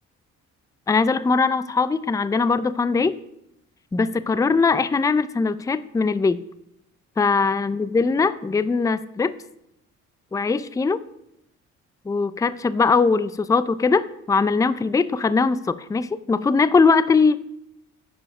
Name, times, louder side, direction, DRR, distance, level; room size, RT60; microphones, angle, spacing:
voice 1, 0.9-3.2 3.9-6.4 7.2-9.4 10.3-11.0 12.1-17.4, left 4 dB, 10° left, 16 dB, 0.4 m, -21 dB
11.0 x 4.8 x 6.0 m, 0.81 s
cardioid pair, 90°, 30 cm